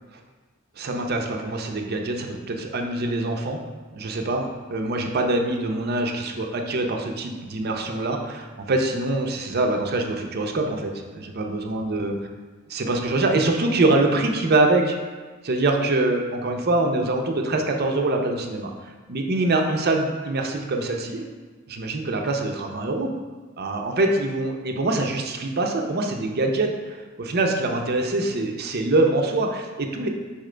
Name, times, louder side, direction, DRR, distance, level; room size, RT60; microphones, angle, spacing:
voice 1, 0.8-3.6 3.9-12.1 12.7-15.0 15.4-18.7 19.1-21.3 21.7-23.1 23.6-30.1, right 2 dB, 50° right, 3 dB, 0.6 m, -24 dB
5.6 x 5.1 x 3.3 m, 1.3 s
head